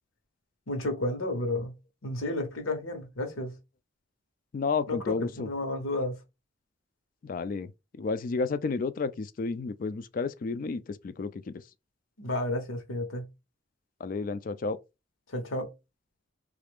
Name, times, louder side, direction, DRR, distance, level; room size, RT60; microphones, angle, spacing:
voice 1, 0.7-1.7 2.0-3.5 4.9-6.2 12.2-13.3 15.3-15.7, left 1 dB, 85° left, 1.1 m, -32 dB
voice 2, 4.5-5.5 7.2-7.7 8.0-11.6 14.0-14.8, left 4 dB, 40° left, 0.3 m, -31 dB
3.3 x 2.4 x 3.5 m
head